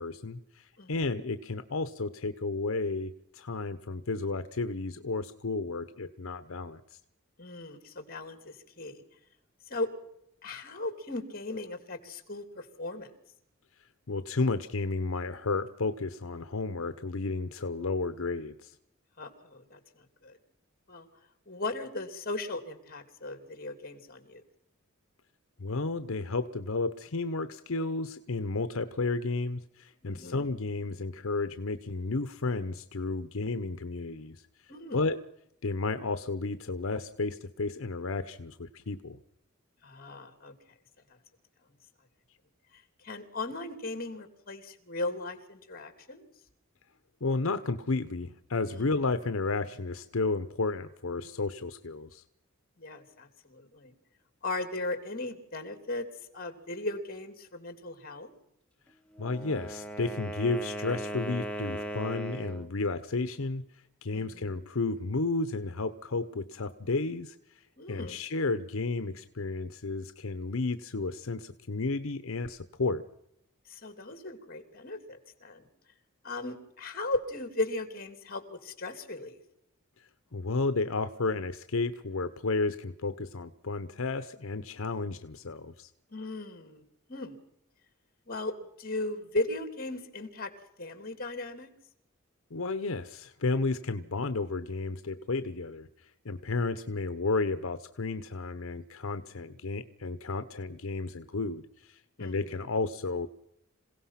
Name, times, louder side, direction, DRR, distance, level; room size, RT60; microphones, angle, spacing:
voice 1, 0.0-6.8 14.1-18.7 25.6-34.4 34.9-35.2 35.6-39.2 47.2-52.2 59.2-67.4 67.9-73.0 80.3-85.9 92.5-103.3, left 3 dB, 75° left, 11 dB, 0.9 m, -32 dB
voice 2, 0.8-1.1 7.4-9.0 9.7-9.9 10.4-13.1 19.2-19.8 20.2-20.4 20.9-21.1 21.5-24.4 30.0-30.5 34.7-35.0 39.8-40.5 43.0-46.3 48.7-48.9 52.8-53.9 54.4-56.0 56.3-58.3 64.1-64.5 67.8-68.2 73.7-75.7 76.2-79.4 86.1-86.8 87.1-87.4 88.3-88.5 88.8-90.5 90.8-91.7 102.2-102.4, left 2 dB, 45° left, 8 dB, 3.0 m, -37 dB
Wind instrument woodwind instrument, 59.1-62.7, right 1 dB, 5° left, 1.2 m, -38 dB
27.0 x 17.0 x 5.8 m, 0.78 s
head